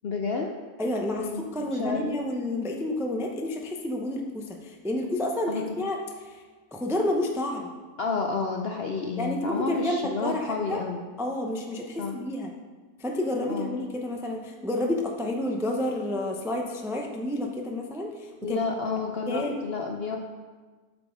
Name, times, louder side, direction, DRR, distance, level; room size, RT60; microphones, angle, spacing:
voice 1, 0.0-0.6 1.1-2.0 5.5-5.8 8.0-11.1 12.0-12.1 13.5-13.8 18.4-20.2, left 4 dB, 65° left, 2 dB, 0.6 m, -30 dB
voice 2, 0.8-6.4 6.7-7.7 9.2-10.8 11.2-12.5 13.0-18.6 19.3-19.6, left 1 dB, 5° right, 1 dB, 0.3 m, -30 dB
8.3 x 7.0 x 5.2 m, 1.4 s
omnidirectional pair, 1.8 m